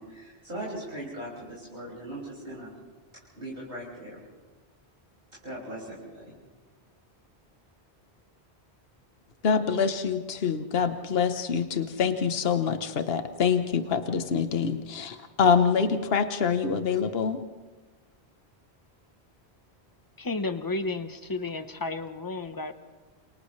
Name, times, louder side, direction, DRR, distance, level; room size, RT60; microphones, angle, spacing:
voice 1, 0.0-2.7 3.4-4.2 5.4-6.3, right 1 dB, 60° right, -8 dB, 6.4 m, -39 dB
voice 2, 9.4-17.4, left 6 dB, 65° left, 8 dB, 1.3 m, -25 dB
voice 3, 20.2-22.7, left 3 dB, 20° left, 9 dB, 1.0 m, -32 dB
29.0 x 28.5 x 3.3 m, 1.3 s
omnidirectional pair, 1.1 m